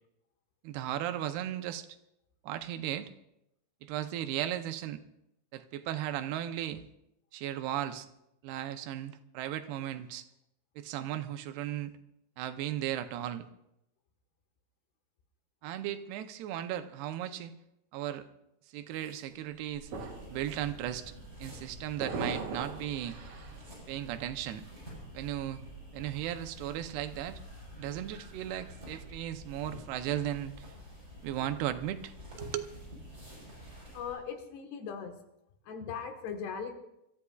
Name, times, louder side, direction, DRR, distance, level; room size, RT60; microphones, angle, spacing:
voice 1, 0.6-1.9 2.4-3.1 3.8-5.0 5.5-6.8 7.3-8.1 8.4-10.3 10.8-11.9 12.4-13.5 15.6-17.5 17.9-18.2 18.7-19.9 20.3-21.1 21.4-23.2 23.9-24.6 25.1-25.6 25.9-27.4 27.8-30.7 31.2-32.7, right 12 dB, 85° right, 9 dB, 2.8 m, -36 dB
sound 1, 19.0-19.1 19.7-20.4 20.7-21.0 22.0-23.6, right 3 dB, 70° right, 3.8 m, -40 dB
sound 2, 19.8-34.1, equal, 15° right, 7.5 m, -48 dB
voice 2, 33.9-35.1 35.7-36.8, left 6 dB, 85° left, 5 dB, 3.5 m, -39 dB
28.5 x 14.0 x 2.3 m, 0.84 s
omnidirectional pair, 4.6 m